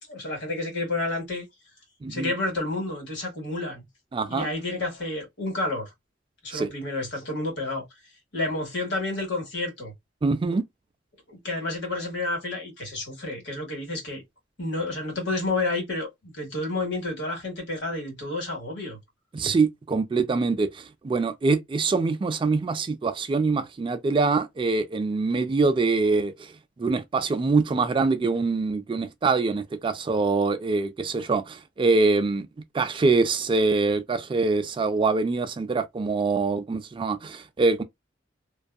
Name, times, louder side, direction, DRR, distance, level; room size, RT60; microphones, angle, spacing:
voice 1, 0.1-1.4 2.1-3.8 4.3-5.9 6.4-7.8 8.3-9.9 11.3-14.2 14.6-19.0, left 2 dB, 65° left, 1.5 m, -30 dB
voice 2, 2.0-2.3 4.1-4.5 6.5-6.7 10.2-10.6 19.3-26.5 26.8-32.5 32.7-37.8, right 3 dB, 25° right, 0.3 m, -24 dB
2.6 x 2.4 x 2.2 m
head